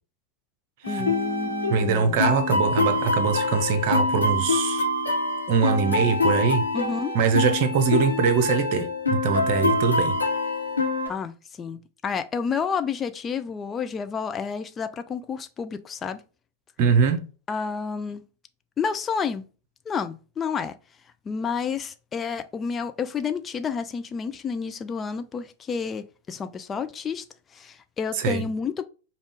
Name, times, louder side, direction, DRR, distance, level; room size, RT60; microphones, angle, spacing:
sound 1, 0.8-11.1, left 2 dB, 80° left, 1.0 m, -25 dB
voice 1, 0.9-2.3 6.7-7.1 11.1-16.2 17.5-18.2 18.8-19.4 19.9-20.7 21.3-27.2 27.5-28.9, left 6 dB, 20° left, 0.3 m, -30 dB
voice 2, 1.7-4.8 5.5-6.6 7.1-10.2 16.8-17.2 28.1-28.4, right 5 dB, 45° right, 0.8 m, -22 dB
5.3 x 2.4 x 3.4 m
figure-of-eight pair, 90°, 0 cm